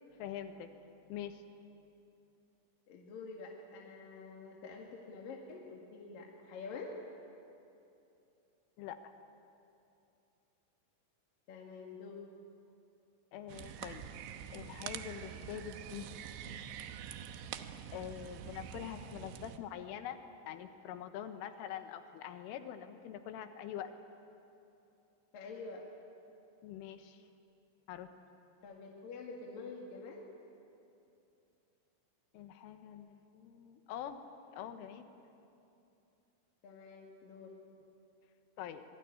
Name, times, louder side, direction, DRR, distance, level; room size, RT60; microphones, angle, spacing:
voice 1, 0.2-0.7 1.1-1.4 8.8-9.0 13.3-14.1 14.5-16.1 17.9-20.2 20.5-23.9 26.6-27.2 27.9-28.1 32.3-34.2 34.5-35.1 38.6-38.9, left 10 dB, 90° left, 8 dB, 3.9 m, -44 dB
voice 2, 2.9-6.9 11.5-12.2 25.3-25.8 28.6-30.2 36.6-37.5, left 4 dB, 55° left, -1 dB, 3.1 m, -47 dB
sound 1, 13.5-19.6, right 9 dB, 75° right, 3.0 m, -46 dB
26.0 x 22.5 x 9.8 m, 2.8 s
omnidirectional pair, 5.6 m